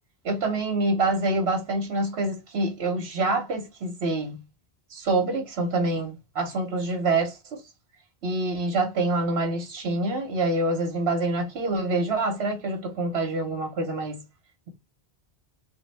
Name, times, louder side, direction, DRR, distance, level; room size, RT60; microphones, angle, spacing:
voice 1, 0.2-4.4 4.9-7.6 8.2-14.2, right 2 dB, 85° right, 1.1 m, -26 dB
3.4 x 2.2 x 3.2 m
omnidirectional pair, 1.1 m